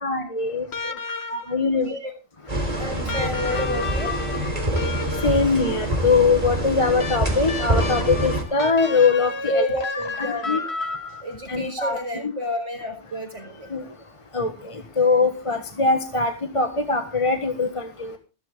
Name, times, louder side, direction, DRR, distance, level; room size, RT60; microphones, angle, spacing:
voice 1, 0.0-0.7 1.3-1.9 5.2-9.6 10.5-10.6 11.5-12.3 13.7-13.8 14.3-18.2, left 4 dB, 25° left, 6 dB, 1.4 m, -22 dB
sound 1, 0.7-1.7 3.1-5.6 7.0-11.5 12.8-12.9, left 4 dB, 65° left, 1.8 m, -32 dB
voice 2, 1.8-2.1 2.7-4.2 9.5-10.7 11.2-13.7, left 1 dB, 85° right, 3 dB, 5.1 m, -30 dB
sound 2, 2.5-8.4, right 1 dB, 30° right, 3.4 m, -25 dB
15.5 x 13.0 x 3.8 m, 0.32 s
omnidirectional pair, 1.2 m